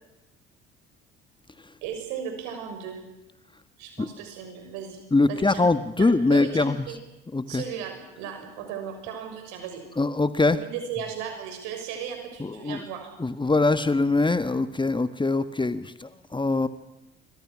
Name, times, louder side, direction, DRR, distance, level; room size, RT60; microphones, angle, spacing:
voice 1, 1.8-3.0 3.8-5.0 5.2-5.6 6.0-7.0 7.5-9.8 10.5-13.1, right 8 dB, 70° right, 5 dB, 6.5 m, -36 dB
voice 2, 5.1-6.8 7.3-7.6 10.0-10.6 12.4-12.8 13.2-16.7, left 3 dB, 15° left, 12 dB, 1.5 m, -23 dB
28.5 x 25.0 x 6.3 m, 0.94 s
hypercardioid pair, 55°, 30 cm